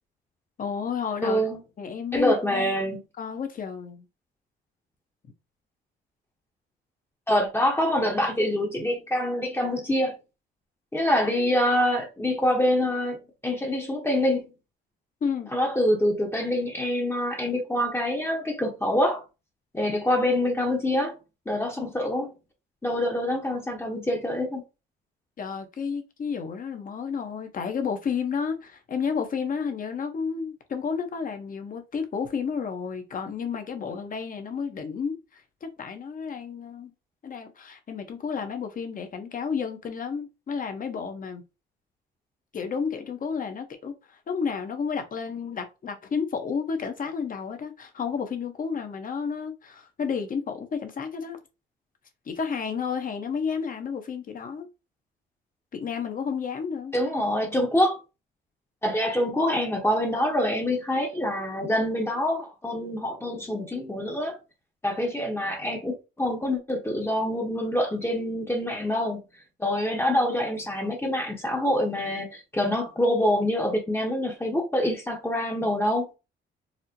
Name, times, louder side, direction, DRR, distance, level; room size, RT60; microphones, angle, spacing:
voice 1, 0.6-1.5 1.8-4.0 15.2-15.5 25.4-36.9 37.2-41.4 42.5-51.4 52.3-54.7 55.7-57.0, left 6 dB, 45° left, 0.9 m, -31 dB
voice 2, 1.2-1.6 2.1-3.0 7.3-10.2 10.9-14.5 15.5-19.2 19.7-21.1 21.5-22.3 22.8-24.6 56.9-58.0 58.8-64.4 64.8-69.2 69.6-76.1, left 1 dB, 10° left, 0.8 m, -25 dB
4.2 x 2.1 x 2.7 m
cardioid pair, 90°, 20 cm